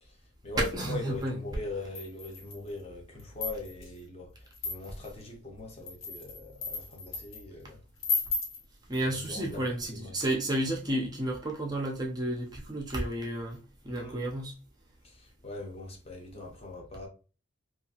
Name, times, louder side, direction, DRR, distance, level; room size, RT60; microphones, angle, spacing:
voice 1, 0.0-7.8 9.0-9.7 9.9-10.2 13.9-14.3 15.0-17.1, left 3 dB, 30° left, 0.6 m, -41 dB
voice 2, 0.7-1.4 8.9-13.6 13.8-14.5, right 1 dB, 20° right, 0.5 m, -32 dB
sound 1, 2.0-2.7 3.2-3.9 4.5-5.1 5.7-7.4 8.0-8.6, left 3 dB, 85° left, 1.0 m, -34 dB
2.8 x 2.4 x 2.7 m
head